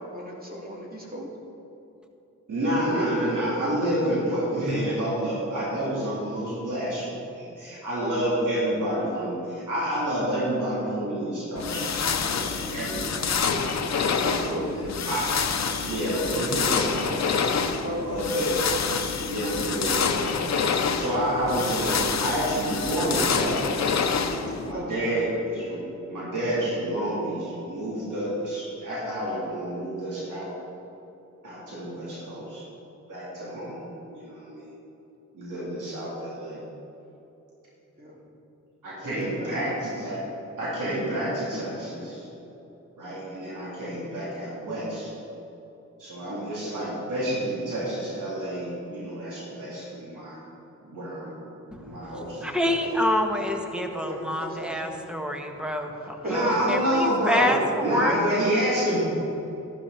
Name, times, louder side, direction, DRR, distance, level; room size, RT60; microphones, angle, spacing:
voice 1, 0.1-1.3 8.0-8.2 14.0-14.7 17.8-18.3 24.7-25.0 38.0-38.2 39.1-39.5 54.0-55.0 56.2-56.6, equal, 30° right, -3 dB, 3.1 m, -35 dB
voice 2, 2.5-7.1 7.4-13.9 14.4-15.2 15.8-17.4 18.0-18.6 19.3-20.6 21.0-23.8 24.6-25.8 26.1-30.5 31.4-32.6 33.1-34.7 35.3-36.6 38.8-40.2 40.6-42.3 43.0-45.1 46.0-50.4 50.8-51.3 51.7-52.8 56.2-59.0, right 1 dB, 85° right, -7 dB, 3.4 m, -29 dB
sound 1, 11.6-24.7, left 6 dB, 60° left, 0.9 m, -27 dB
voice 3, 51.7-58.2, left 1 dB, 5° right, 3 dB, 1.5 m, -27 dB
13.0 x 12.0 x 4.3 m, 2.9 s
cardioid pair, 70°, 30 cm